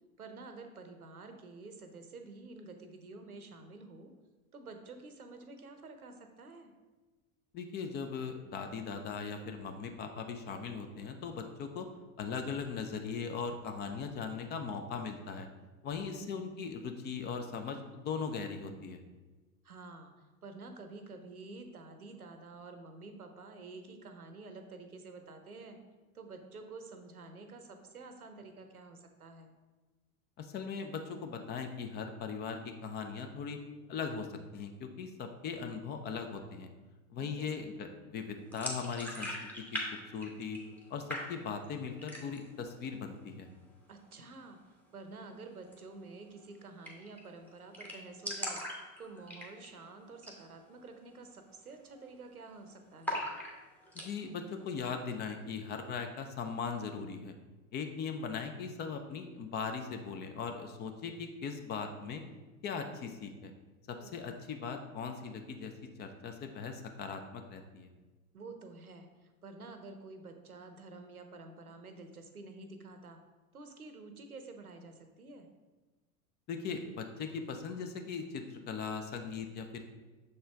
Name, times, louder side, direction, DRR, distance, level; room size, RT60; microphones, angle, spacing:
voice 1, 0.2-4.1 4.5-6.7 15.9-16.5 19.6-25.8 26.1-29.5 37.2-37.7 43.9-48.6 49.0-53.2 63.9-64.3 68.3-73.2 73.5-75.5, right 3 dB, 90° right, 6 dB, 0.7 m, -49 dB
voice 2, 7.5-11.9 12.2-15.5 15.8-19.0 30.4-33.6 33.9-34.3 34.5-36.7 37.1-39.4 39.7-39.8 40.1-40.6 40.9-43.5 53.9-57.3 57.7-62.2 62.6-63.5 63.9-65.7 66.0-67.9 76.5-79.9, left 5 dB, 25° left, 6 dB, 0.4 m, -39 dB
sound 1, 38.5-39.9 40.1-40.8 41.1-41.7 42.0-42.5 42.9-43.0 43.3-43.9 45.6-45.8 46.1-46.2 46.4-46.5 46.8-47.2 47.5-47.6 47.7-49.8 50.1-50.4 50.8-50.9 51.4-51.7 51.9-52.5 53.0-54.1, equal, 5° left, 1.1 m, -39 dB
6.5 x 4.3 x 3.3 m, 1.2 s
figure-of-eight pair, 80°, 43 cm